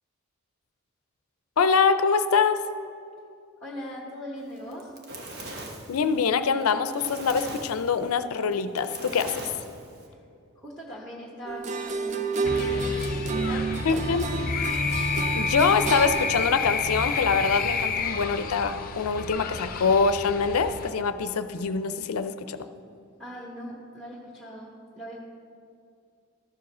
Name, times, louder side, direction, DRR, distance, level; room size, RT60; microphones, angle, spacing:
voice 1, 1.6-2.6 5.9-9.5 13.8-14.3 15.3-22.6, left 5 dB, 90° left, 11 dB, 0.5 m, -24 dB
voice 2, 3.6-4.9 10.6-12.9 13.3-14.2 23.2-25.2, equal, ahead, -3 dB, 1.0 m, -40 dB
Fire, 4.6-10.1, right 2 dB, 50° right, 1.2 m, -40 dB
sound 1, 11.5-16.5, right 4 dB, 35° right, 0.4 m, -30 dB
sound 2, 12.4-20.9, left 4 dB, 40° left, 0.6 m, -30 dB
13.0 x 4.9 x 6.1 m, 2.5 s
head